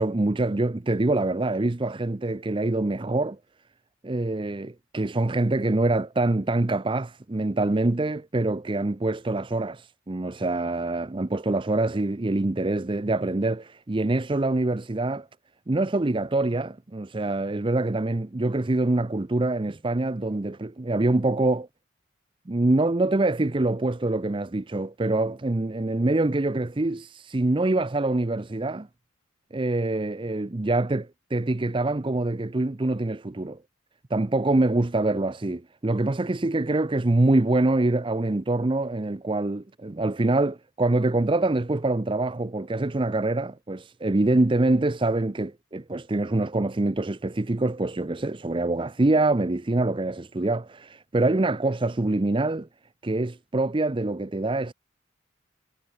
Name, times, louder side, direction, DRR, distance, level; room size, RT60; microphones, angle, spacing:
voice 1, 0.0-3.4 4.0-15.3 15.7-21.7 22.5-28.9 29.5-33.6 34.1-52.7 53.0-54.7, right 2 dB, 25° right, 0.6 m, -25 dB
head